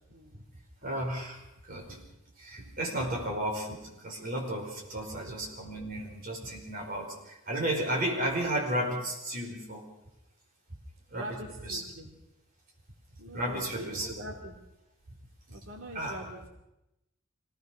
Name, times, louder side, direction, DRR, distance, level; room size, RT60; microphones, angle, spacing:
voice 1, 0.1-0.4 5.1-5.2 10.7-10.8 11.1-12.1 13.2-14.5 15.1-15.2 15.5-16.5, right 1 dB, 75° right, 1 dB, 2.8 m, -43 dB
voice 2, 0.8-2.0 2.4-9.8 11.1-11.3 11.6-11.8 13.3-14.1 15.9-16.2, right 1 dB, 40° right, 0 dB, 5.0 m, -33 dB
24.0 x 18.0 x 6.3 m, 0.91 s
head